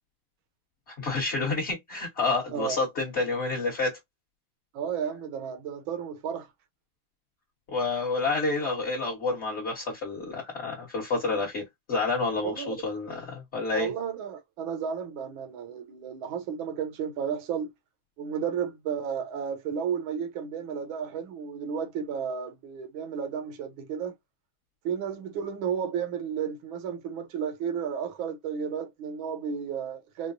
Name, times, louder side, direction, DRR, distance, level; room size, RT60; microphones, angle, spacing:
voice 1, 0.9-4.0 7.7-13.9, left 3 dB, 40° left, 1.2 m, -29 dB
voice 2, 4.7-6.5 12.4-12.8 13.7-17.7 18.2-24.1 24.8-30.3, right 7 dB, 75° right, 1.6 m, -33 dB
4.6 x 2.0 x 2.5 m
omnidirectional pair, 2.2 m